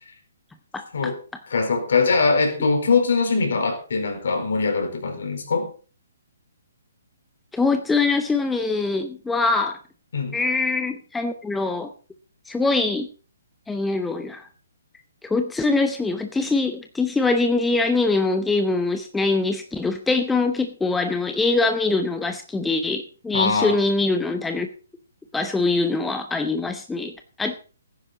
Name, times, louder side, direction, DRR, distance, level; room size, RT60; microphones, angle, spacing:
voice 1, 0.7-1.1 7.5-9.8 10.3-11.9 12.5-13.1 13.7-14.5 15.2-24.7 25.3-27.6, left 3 dB, 5° left, 7 dB, 0.8 m, -23 dB
voice 2, 1.5-5.7 10.1-10.4 23.3-23.8, left 4 dB, 55° left, 4 dB, 4.5 m, -22 dB
17.5 x 10.0 x 4.1 m, 0.37 s
figure-of-eight pair, 130°, 0 cm